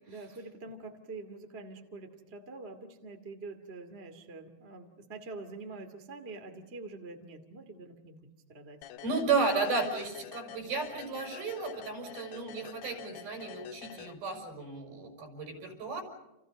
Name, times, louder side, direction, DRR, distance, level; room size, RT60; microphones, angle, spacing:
voice 1, 0.1-8.8, right 3 dB, 20° right, 5 dB, 2.0 m, -45 dB
sound 1, 8.8-14.6, left 11 dB, 80° left, 3.0 m, -48 dB
voice 2, 9.0-16.0, right 4 dB, 70° right, 4 dB, 7.3 m, -33 dB
30.0 x 29.0 x 5.3 m, 0.96 s
omnidirectional pair, 4.5 m